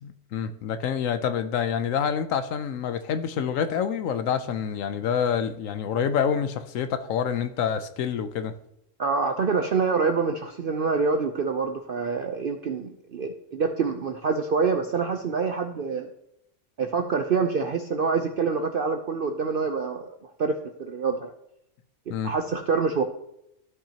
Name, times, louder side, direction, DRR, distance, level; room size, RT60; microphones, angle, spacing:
voice 1, 0.0-8.5 22.1-22.3, left 7 dB, 70° left, 11 dB, 0.9 m, -27 dB
voice 2, 9.0-16.1 16.8-20.1 20.4-21.3 22.1-23.0, right 5 dB, 60° right, 5 dB, 0.6 m, -26 dB
13.0 x 5.8 x 2.9 m, 0.80 s
omnidirectional pair, 1.6 m